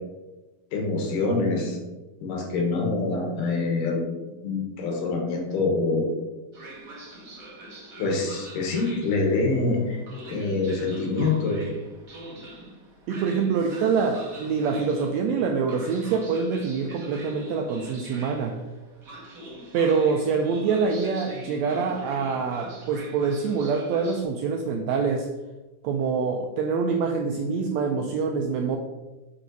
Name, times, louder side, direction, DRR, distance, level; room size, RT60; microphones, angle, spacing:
voice 1, 0.7-1.8 2.2-4.0 4.4-6.1 8.0-10.0 10.3-11.7, left 3 dB, 80° left, 1 dB, 3.0 m, -25 dB
Train, 6.5-24.2, right 1 dB, 70° right, 0.8 m, -43 dB
voice 2, 13.1-18.6 19.7-25.3 25.8-28.8, right 5 dB, 85° right, 3 dB, 1.5 m, -25 dB
9.6 x 3.8 x 3.9 m, 1.1 s
omnidirectional pair, 3.7 m